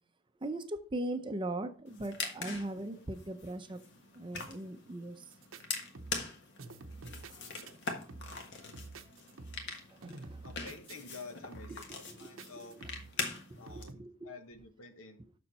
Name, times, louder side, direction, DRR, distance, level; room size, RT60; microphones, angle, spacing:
voice 1, 0.4-3.8 4.1-5.2 9.7-10.4 11.9-12.4 12.8-12.9 13.3-14.3, right 1 dB, 25° right, 0.6 m, -40 dB
sound 1, 1.9-13.8, left 4 dB, 55° left, 1.5 m, -43 dB
sound 2, 5.3-5.6 5.9-6.3 6.6-7.7 8.1-8.5 8.7-9.8 10.0-11.2 11.5-11.9 12.4-13.2 13.7-13.9, right 3 dB, 70° right, 0.8 m, -48 dB
voice 2, 10.4-12.8 13.6-15.2, left 4 dB, 75° left, 1.3 m, -50 dB
7.2 x 6.3 x 4.2 m
head